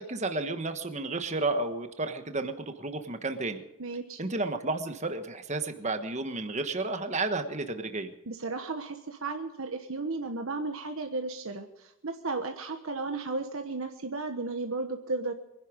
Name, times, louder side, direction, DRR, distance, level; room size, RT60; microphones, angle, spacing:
voice 1, 0.0-3.6 4.2-8.1, right 2 dB, 30° right, 8 dB, 1.3 m, -32 dB
voice 2, 3.8-4.2 8.3-15.3, right 3 dB, 70° right, 5 dB, 1.3 m, -34 dB
24.0 x 11.0 x 5.2 m, 0.90 s
head